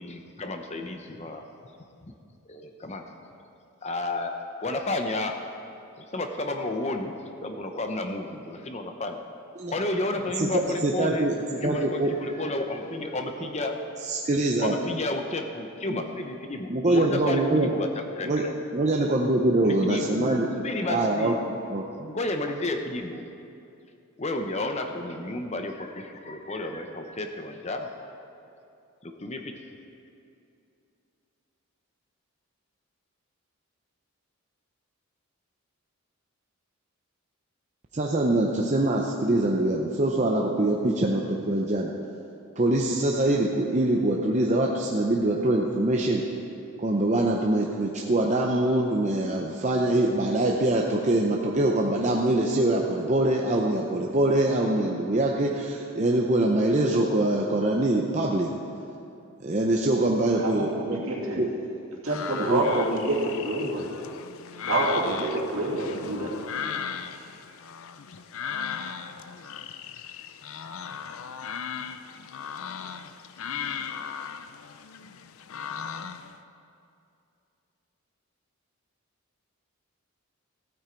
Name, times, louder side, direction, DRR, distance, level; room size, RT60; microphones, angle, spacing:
voice 1, 0.0-1.4 2.0-2.1 2.5-3.0 3.8-5.3 6.0-7.1 7.4-9.2 9.7-11.3 11.6-13.8 14.6-18.5 19.6-21.4 22.1-23.2 24.2-28.1 29.0-29.7, left 2 dB, 30° left, 5 dB, 0.7 m, -32 dB
voice 2, 10.4-12.1 14.1-14.8 15.9-16.0 16.7-17.7 18.2-18.4 18.7-20.5 20.9-21.3 21.7-22.1 37.9-41.9 42.6-46.2 46.8-58.5 59.4-61.0 61.4-61.5 62.5-62.6, right 1 dB, 30° right, -1 dB, 0.6 m, -24 dB
voice 3, 60.4-61.4 62.0-63.9 64.6-66.3, right 1 dB, 70° right, -4 dB, 2.4 m, -27 dB
sound 1, 62.1-76.4, left 7 dB, 65° left, 0.5 m, -37 dB
15.5 x 8.9 x 4.5 m, 2.6 s
head